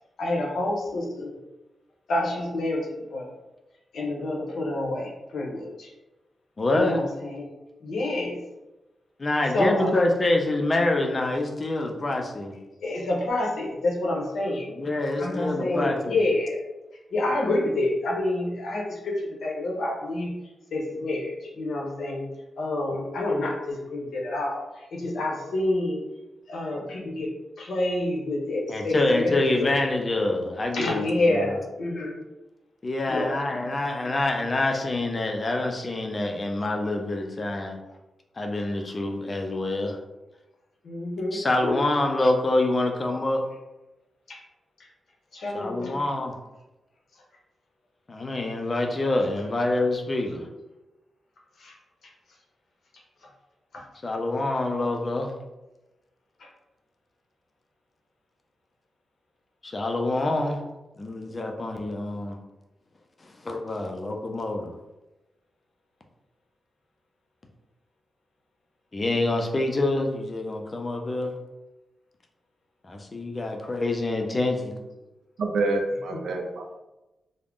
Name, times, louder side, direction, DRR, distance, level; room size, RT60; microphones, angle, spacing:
voice 1, 0.2-1.4 2.1-3.3 3.9-5.9 6.7-7.5 7.8-8.4 9.5-9.9 12.8-14.7 15.2-16.6 17.1-20.3 20.7-22.3 22.6-26.0 26.5-27.3 27.6-29.7 30.7-32.2 33.1-33.3 40.8-41.7 44.3-44.4 44.8-44.9 45.3-46.0 51.6-51.7 52.0-52.1 53.7-53.8 56.4-56.5 76.1-76.2, left 1 dB, 75° left, -2 dB, 0.7 m, -28 dB
voice 2, 6.6-7.0 9.2-12.6 14.8-16.2 28.7-31.6 32.8-37.8 38.4-40.0 41.3-43.5 45.5-46.3 48.1-50.5 54.0-55.3 59.6-60.6 61.0-62.4 63.2-64.7 68.9-71.3 72.8-74.8, left 2 dB, 25° left, 2 dB, 0.3 m, -26 dB
voice 3, 75.4-76.8, right 2 dB, 80° right, 3 dB, 0.4 m, -27 dB
2.4 x 2.0 x 3.4 m, 1.0 s
wide cardioid pair, 175°, 0 cm